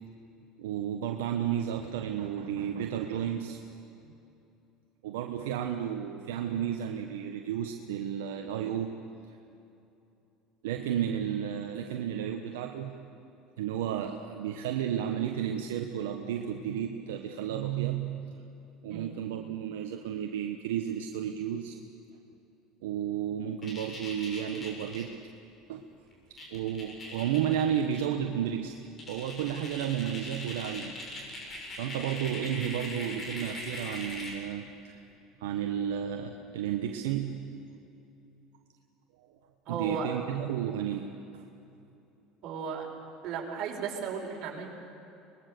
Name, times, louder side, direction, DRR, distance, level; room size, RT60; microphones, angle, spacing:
voice 1, 0.6-3.6 5.0-8.9 10.6-12.9 13.6-18.4 18.8-21.8 22.8-25.1 25.7-25.8 26.5-31.0 31.2-31.4 31.8-35.0 35.4-37.4 39.7-41.4, right 9 dB, 90° right, 3 dB, 1.2 m, -32 dB
sound 1, 23.6-25.0 26.1-26.2 26.4-28.0 28.4-28.5 29.0-34.4, left 1 dB, 30° left, 7.1 m, -41 dB
voice 2, 39.7-40.2 42.4-42.9 43.2-44.7, right 6 dB, 55° right, 0 dB, 5.3 m, -35 dB
24.5 x 20.5 x 6.9 m, 2.8 s
supercardioid pair, 100°, 0 cm